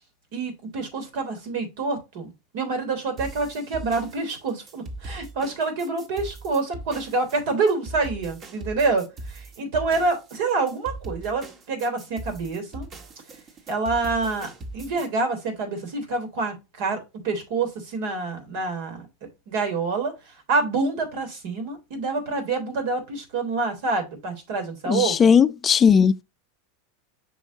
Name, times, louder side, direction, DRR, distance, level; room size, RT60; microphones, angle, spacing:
voice 1, 0.3-12.9 13.7-17.0 17.2-19.1 19.5-20.1 20.5-25.3, right 3 dB, 65° right, 3.4 m, -27 dB
sound 1, 3.2-15.1, right 2 dB, 40° right, 1.6 m, -40 dB
voice 2, 24.9-26.2, left 6 dB, 25° left, 0.6 m, -17 dB
7.1 x 5.7 x 2.7 m
hypercardioid pair, 100°, 0 cm